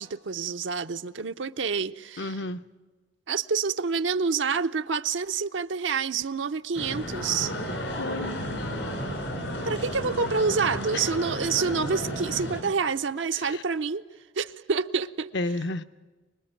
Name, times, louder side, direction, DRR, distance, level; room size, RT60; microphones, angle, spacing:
voice 1, 0.0-2.4 3.3-7.5 9.6-14.0 14.3-15.3, right 5 dB, 85° right, 0.7 m, -28 dB
voice 2, 2.2-2.6 8.0-8.4 10.9-11.0 13.3-13.6 15.3-15.8, left 2 dB, 70° left, 0.8 m, -31 dB
sound 1, 6.7-12.6, equal, 85° left, 5.4 m, -33 dB
24.5 x 21.0 x 9.1 m
head